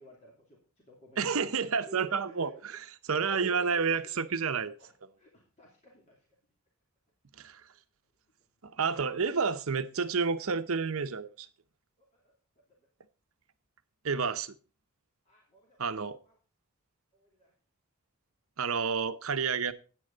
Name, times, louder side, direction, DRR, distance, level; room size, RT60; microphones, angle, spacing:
voice 1, 0.0-2.6 3.1-4.1 4.8-6.3 7.7-7.8 12.0-12.3 12.7-12.8 15.2-16.4 17.1-17.5, right 1 dB, 30° left, 2.7 m, -53 dB
voice 2, 1.2-2.5 3.1-4.7 7.4-7.6 8.6-11.5 14.0-14.6 15.8-16.2 18.6-19.7, right 5 dB, 65° right, 0.8 m, -30 dB
10.0 x 9.3 x 3.9 m
head